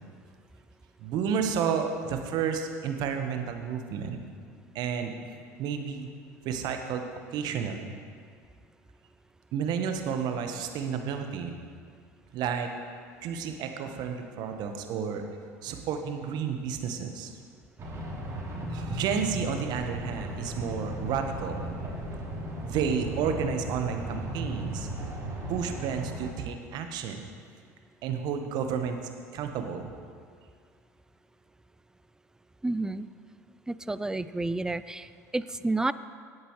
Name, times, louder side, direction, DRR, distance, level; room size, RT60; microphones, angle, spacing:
voice 1, 1.0-4.2 4.7-5.2 5.6-6.1 6.4-7.0 7.3-8.0 9.5-11.5 12.3-12.7 13.2-15.2 15.6-17.4 18.7-21.7 22.6-24.9 25.5-27.2 28.0-29.0 29.3-29.9, right 7 dB, 55° right, 5 dB, 1.1 m, -31 dB
sound 1, 17.8-26.3, right 1 dB, 35° right, 2.8 m, -36 dB
voice 2, 32.6-33.1 33.7-35.9, right 2 dB, 5° right, 15 dB, 0.4 m, -30 dB
17.5 x 8.1 x 3.1 m, 2.1 s
hypercardioid pair, 70°, 9 cm